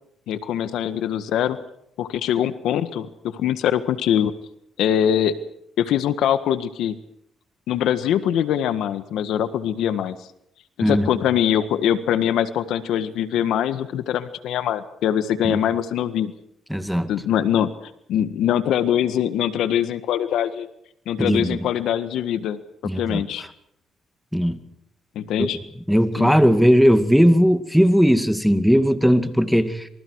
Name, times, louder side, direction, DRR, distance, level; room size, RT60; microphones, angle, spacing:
voice 1, 0.3-1.6 2.0-4.3 4.8-5.4 5.8-6.9 7.7-10.2 10.8-16.3 17.1-20.7 21.0-23.4 25.1-25.6 26.2-26.3, left 10 dB, 80° left, 12 dB, 1.6 m, -23 dB
voice 2, 10.8-11.2 15.4-15.6 16.7-17.1 21.2-21.6 22.8-23.2 24.3-24.6 25.4-25.5 25.9-29.9, equal, ahead, 9 dB, 2.2 m, -18 dB
27.0 x 27.0 x 4.8 m, 0.75 s
cardioid pair, 90°, 0 cm